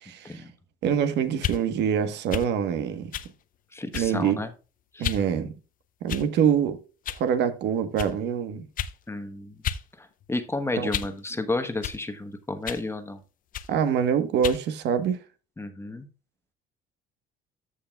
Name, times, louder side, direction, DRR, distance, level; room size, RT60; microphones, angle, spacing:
voice 1, 0.0-0.4 0.8-3.1 3.9-4.4 5.0-5.5 6.0-6.8 7.2-8.6 10.8-10.9 13.7-15.2, right 8 dB, 65° right, 1.3 m, -25 dB
sound 1, 1.3-1.6 2.3-2.5 3.1-3.3 3.9-4.2 5.0-5.2 6.1-6.5 7.0-7.2 8.0-8.1 8.8-9.0 9.6-9.8 10.2-11.2 11.8-12.0 12.6-12.9 13.5-13.7 14.4-14.6, left 9 dB, 50° left, 0.7 m, -32 dB
voice 2, 3.7-4.5 4.9-5.1 9.1-9.6 10.0-13.2 15.6-16.1, left 2 dB, 15° left, 1.1 m, -32 dB
14.0 x 5.8 x 2.3 m
cardioid pair, 105°, 19 cm